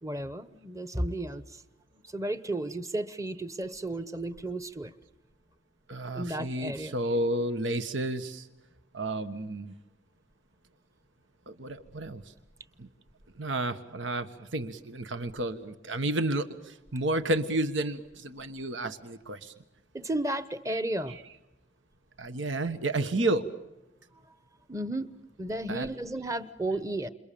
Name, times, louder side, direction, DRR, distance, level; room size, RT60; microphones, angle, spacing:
voice 1, 0.0-1.6 2.1-4.9 6.1-7.0 19.9-21.2 24.7-25.1 25.4-27.1, right 1 dB, 15° right, 13 dB, 1.0 m, -33 dB
voice 2, 5.9-8.4 8.9-9.7 11.5-12.2 12.8-12.9 13.4-14.3 14.5-19.5 21.1-21.2 22.2-23.5 25.7-25.9, right 1 dB, 85° right, 10 dB, 1.4 m, -31 dB
30.0 x 28.5 x 7.0 m, 0.96 s
head